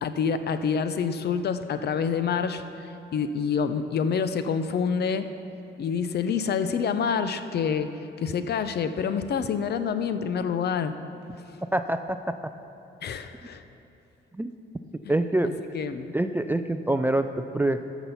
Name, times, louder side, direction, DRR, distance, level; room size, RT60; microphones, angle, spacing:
voice 1, 0.0-5.3 5.8-10.9 13.0-13.6 15.7-16.1, left 6 dB, 55° left, 10 dB, 0.6 m, -27 dB
voice 2, 11.7-12.5 14.3-14.5 15.1-15.5 16.1-17.9, right 1 dB, 10° right, 9 dB, 0.3 m, -26 dB
13.5 x 6.1 x 5.6 m, 2.9 s
cardioid pair, 90°, 20 cm